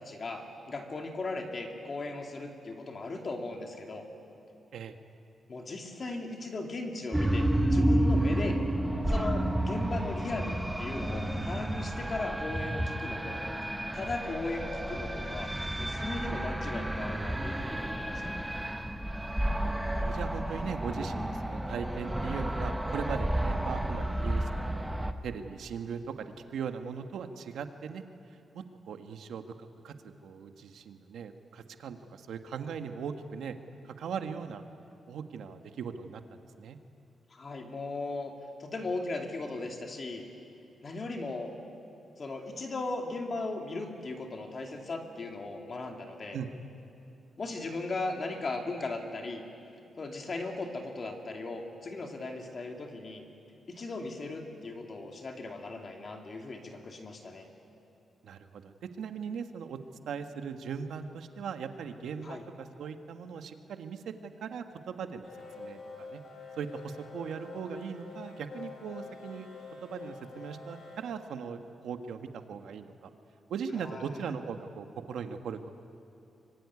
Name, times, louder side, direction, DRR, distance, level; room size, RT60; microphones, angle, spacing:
voice 1, 0.0-4.1 5.5-8.6 9.0-13.4 13.9-15.5 15.8-18.5 37.3-38.3 38.6-40.2 40.8-41.5 42.2-46.4 47.4-49.4 50.0-53.2 53.7-57.5 62.2-62.4 73.8-74.2, left 3 dB, 30° left, 3 dB, 2.6 m, -37 dB
sound 1, 7.1-25.1, right 1 dB, 5° right, 1.0 m, -31 dB
voice 2, 19.5-24.9 25.2-28.0 28.5-29.9 30.2-33.6 33.8-34.6 35.1-36.2 36.6-36.8 46.3-46.5 58.2-59.8 60.1-65.3 65.6-66.2 66.6-69.5 69.8-73.1 73.5-75.7, right 6 dB, 75° right, 7 dB, 1.5 m, -39 dB
sound 2, 65.2-71.0, left 4 dB, 50° left, 5.2 m, -46 dB
24.5 x 24.5 x 9.7 m, 2.7 s
wide cardioid pair, 180°, 0 cm